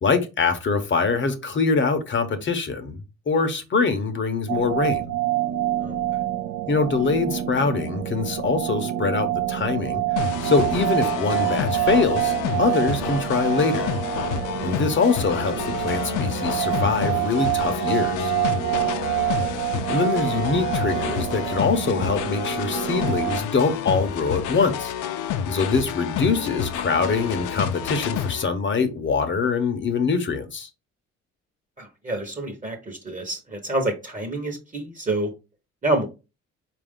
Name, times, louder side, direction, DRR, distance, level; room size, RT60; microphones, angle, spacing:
voice 1, 0.0-5.0 6.7-10.0 10.4-13.9 14.6-18.3 19.9-24.9 25.5-30.7, left 4 dB, 40° left, 0.7 m, -24 dB
sound 1, 4.5-23.4, right 15 dB, 75° right, 0.5 m, -27 dB
voice 2, 5.8-6.2 19.4-19.5 31.8-35.3 35.8-36.1, right 2 dB, 25° right, 1.0 m, -28 dB
sound 2, 10.2-28.4, left 8 dB, 85° left, 0.5 m, -29 dB
4.4 x 2.5 x 3.5 m
cardioid pair, 90°, 30 cm